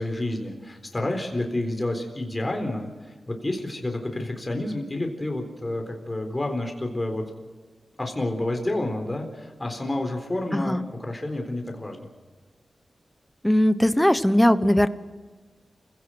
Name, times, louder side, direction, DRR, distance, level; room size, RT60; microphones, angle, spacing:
voice 1, 0.0-7.3 8.0-12.1, left 1 dB, 25° left, 4 dB, 4.0 m, -29 dB
voice 2, 10.5-10.9 13.4-14.9, left 1 dB, 5° left, 13 dB, 1.0 m, -19 dB
28.5 x 16.5 x 6.2 m, 1.4 s
wide cardioid pair, 75°, 0 cm